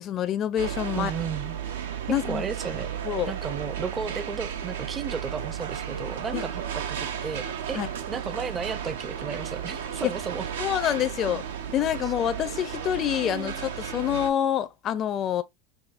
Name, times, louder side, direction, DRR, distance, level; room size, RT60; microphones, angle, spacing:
voice 1, 0.0-1.1 2.1-2.4 3.0-3.3 6.3-6.4 7.8-7.9 10.0-10.1 10.6-11.4 11.7-15.4, left 10 dB, 40° left, 0.4 m, -27 dB
sound 1, 0.6-14.3, right 8 dB, 90° right, 0.7 m, -34 dB
voice 2, 0.9-1.6 2.2-3.0 3.3-7.8 8.1-10.5 12.0-12.1 13.2-13.6, right 6 dB, 25° right, 0.5 m, -34 dB
4.9 x 2.6 x 2.5 m
supercardioid pair, 115°, 0 cm